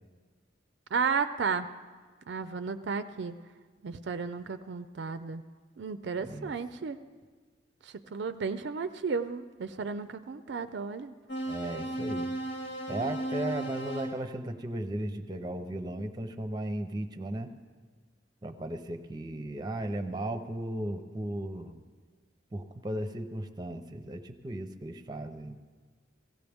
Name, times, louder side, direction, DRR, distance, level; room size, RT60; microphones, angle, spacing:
voice 1, 0.9-1.7 2.3-3.3 3.8-5.4 5.8-7.0 7.8-11.1, right 5 dB, 60° right, 11 dB, 0.4 m, -33 dB
voice 2, 6.2-6.5 11.5-12.3 12.9-17.5 18.4-21.8 22.5-25.7, right 1 dB, 20° right, 8 dB, 0.6 m, -36 dB
sound 1, 11.3-14.2, right 1 dB, 90° left, 2.2 m, -35 dB
17.0 x 16.0 x 3.5 m, 1.5 s
head